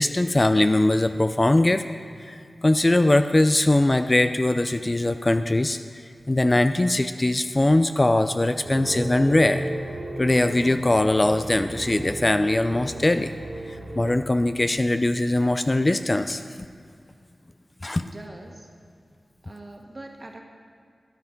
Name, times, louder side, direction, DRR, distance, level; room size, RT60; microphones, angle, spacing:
voice 1, 0.0-1.8 2.2-5.8 6.3-9.7 10.2-13.3 14.0-16.4 17.8-18.0, left 1 dB, 30° left, 9 dB, 0.4 m, -21 dB
sound 1, 8.6-14.1, right 1 dB, 65° right, 2.9 m, -34 dB
voice 2, 17.9-18.7 19.4-20.4, right 2 dB, 40° right, 1 dB, 1.7 m, -42 dB
12.5 x 11.0 x 5.2 m, 2.2 s
wide cardioid pair, 70°, 0 cm